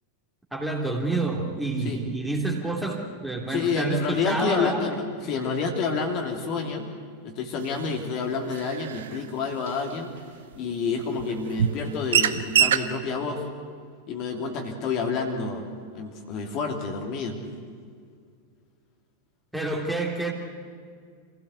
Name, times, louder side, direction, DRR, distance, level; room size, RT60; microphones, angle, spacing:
voice 1, 0.5-4.9 19.5-20.3, right 2 dB, 5° right, 0 dB, 3.2 m, -28 dB
voice 2, 3.5-6.9 7.2-10.1 10.6-13.4 14.1-15.6 15.9-17.4, left 5 dB, 40° left, 2 dB, 2.8 m, -29 dB
sound 1, 7.9-8.0 8.5-9.2 9.6-9.7 10.5-10.6 11.2-11.3 11.6-11.8 12.1-12.9, right 9 dB, 60° right, 1.0 m, -23 dB
26.5 x 16.5 x 8.4 m, 2.1 s
figure-of-eight pair, 90°, 0 cm